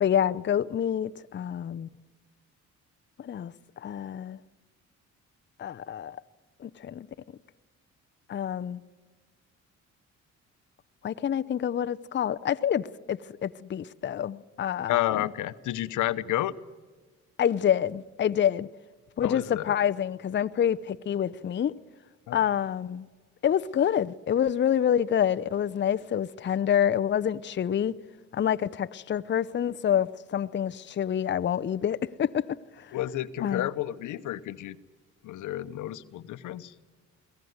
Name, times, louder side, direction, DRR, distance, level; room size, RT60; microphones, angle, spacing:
voice 1, 0.0-1.9 3.2-4.4 5.6-6.2 6.6-7.1 8.3-8.8 11.0-15.0 17.4-18.7 19.2-21.7 22.3-23.0 23.4-28.0 28.3-32.4 32.8-33.0 33.4-33.7, left 9 dB, 40° left, 0.6 m, -27 dB
voice 2, 14.9-16.6 19.2-19.7 22.3-22.4 32.9-34.8 35.2-36.7, left 14 dB, 80° left, 0.9 m, -30 dB
23.0 x 17.0 x 9.5 m
cardioid pair, 90°, 30 cm